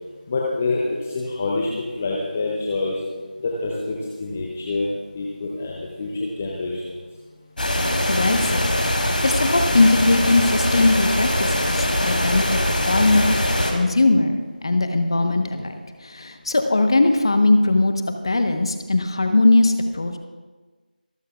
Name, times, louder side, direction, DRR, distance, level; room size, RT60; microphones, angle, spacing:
voice 1, 0.3-3.0 3.4-7.0, left 3 dB, 10° left, -3 dB, 0.5 m, -26 dB
sound 1, 7.6-13.7, left 1 dB, 70° left, 3.3 m, -22 dB
voice 2, 8.1-8.6 9.0-12.6 12.9-13.4 13.7-14.4 14.6-15.7 16.0-17.9 18.2-20.2, left 2 dB, 30° left, 6 dB, 1.1 m, -19 dB
24.5 x 13.0 x 2.4 m, 1.3 s
figure-of-eight pair, 175°, 5 cm